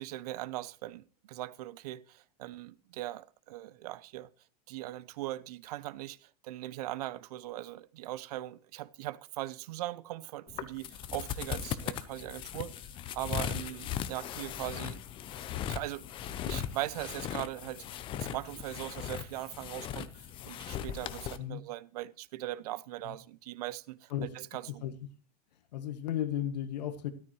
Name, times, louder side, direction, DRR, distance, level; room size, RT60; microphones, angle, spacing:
voice 1, 0.0-4.3 4.7-15.0 15.7-17.9 18.2-24.8, right 15 dB, 65° right, 0.6 m, -40 dB
sound 1, 10.5-21.4, left 10 dB, 25° left, 0.6 m, -38 dB
voice 2, 25.7-27.1, left 11 dB, 90° left, 1.3 m, -34 dB
13.0 x 13.0 x 3.1 m
supercardioid pair, 155°, 21 cm